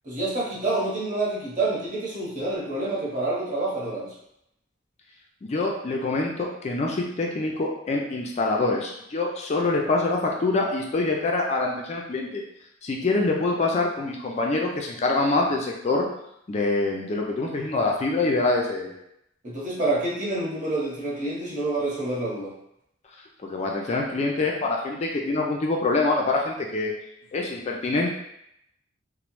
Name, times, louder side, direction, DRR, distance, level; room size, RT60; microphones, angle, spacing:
voice 1, 0.0-4.1 19.4-22.5, right 2 dB, 40° right, -7 dB, 1.0 m, -27 dB
voice 2, 5.4-12.4 12.8-16.1 16.5-18.9 23.4-26.9 27.3-28.1, left 3 dB, 35° left, 0 dB, 0.3 m, -25 dB
3.0 x 2.1 x 3.0 m, 0.78 s
head